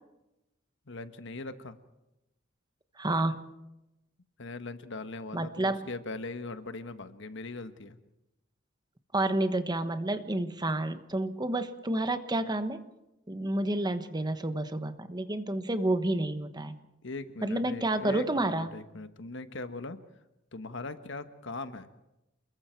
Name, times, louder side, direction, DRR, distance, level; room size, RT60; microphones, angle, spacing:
voice 1, 0.9-1.8 4.4-8.0 17.0-20.0 20.5-21.9, left 3 dB, 65° left, 10 dB, 1.3 m, -40 dB
voice 2, 3.0-3.5 5.3-5.9 9.1-12.8 13.3-16.8 17.4-18.8, right 1 dB, 20° right, 10 dB, 1.2 m, -30 dB
28.5 x 22.0 x 4.6 m, 0.93 s
head